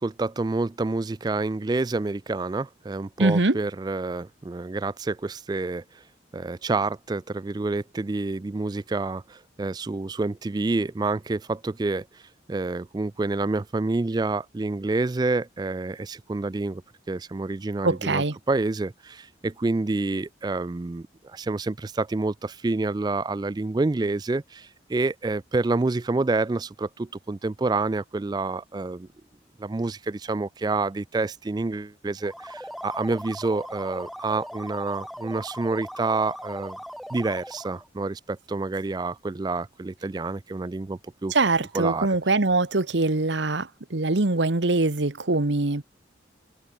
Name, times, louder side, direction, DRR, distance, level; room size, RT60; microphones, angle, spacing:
voice 1, 0.0-5.8 6.3-12.2 12.5-16.8 17.1-29.1 29.6-36.8 37.1-41.3 41.7-42.1, right 3 dB, 20° right, 0.3 m, -28 dB
voice 2, 3.2-3.6 17.8-18.3 41.3-45.8, right 2 dB, 75° right, 1.3 m, -23 dB
sound 1, 32.2-37.9, equal, ahead, 2.0 m, -39 dB
head